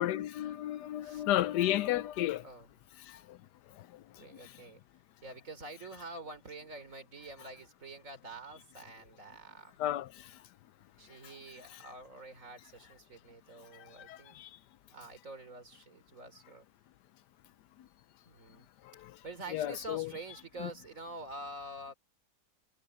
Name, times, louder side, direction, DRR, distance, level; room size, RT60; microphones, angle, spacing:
voice 1, 0.0-2.4 3.1-3.4 9.8-10.1 11.7-11.8 14.1-14.5 19.0-19.1 19.5-20.1 20.6-20.7, left 13 dB, 80° left, 1.2 m, -32 dB
voice 2, 4.2-4.9 5.2-9.8 10.7-14.4 14.9-16.7 18.2-18.7 19.0-21.9, right 2 dB, 50° right, 3.6 m, -47 dB
omnidirectional pair, 1.8 m